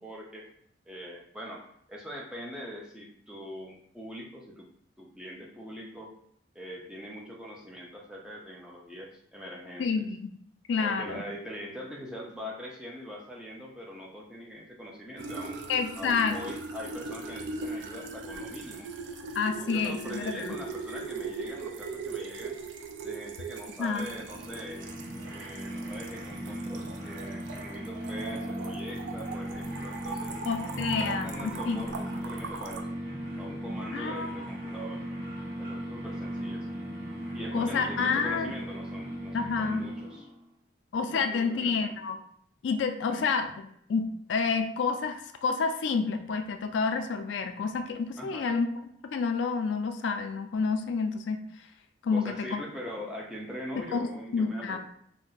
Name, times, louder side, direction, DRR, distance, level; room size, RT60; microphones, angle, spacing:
voice 1, 0.0-0.5 0.9-1.6 1.9-4.7 5.0-6.1 6.5-10.1 10.8-15.6 16.0-18.9 19.5-22.6 23.0-24.9 25.3-30.4 30.8-33.0 33.4-35.0 35.6-36.7 37.3-40.3 41.0-42.0 43.1-43.2 48.2-48.5 52.1-54.8, equal, 5° right, -2 dB, 0.5 m, -42 dB
voice 2, 9.8-10.3 10.7-11.2 15.7-16.4 19.3-20.6 23.8-24.1 30.5-31.9 33.9-34.3 37.5-38.5 39.3-39.9 40.9-42.2 42.6-48.7 49.1-51.4 52.0-52.6 53.9-54.1 54.3-54.8, left 5 dB, 85° left, 6 dB, 0.3 m, -29 dB
sound 1, 15.2-32.8, right 4 dB, 85° right, 0.4 m, -40 dB
sound 2, 23.7-40.4, right 1 dB, 45° right, 0.8 m, -37 dB
2.6 x 2.1 x 3.8 m, 0.66 s
head